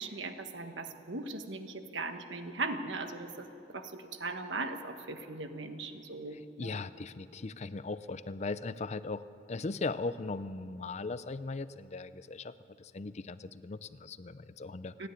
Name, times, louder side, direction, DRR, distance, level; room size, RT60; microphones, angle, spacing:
voice 1, 0.0-3.5 3.7-6.8 15.0-15.1, right 3 dB, 85° right, 7 dB, 1.5 m, -39 dB
voice 2, 6.3-12.5 12.8-15.1, left 3 dB, 35° left, 15 dB, 0.5 m, -38 dB
29.0 x 10.5 x 9.6 m, 2.7 s
head